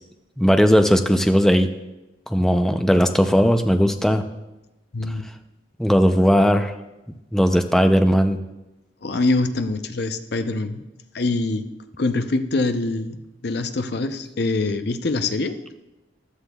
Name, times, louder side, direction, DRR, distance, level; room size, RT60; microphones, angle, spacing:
voice 1, 0.4-1.7 2.3-4.2 5.8-6.7 7.3-8.4, equal, ahead, 6 dB, 0.4 m, -17 dB
voice 2, 4.9-5.2 9.0-10.8 11.1-11.7 12.0-13.2 13.4-15.6, left 2 dB, 55° left, 9 dB, 0.6 m, -24 dB
14.5 x 11.0 x 2.3 m, 0.99 s
head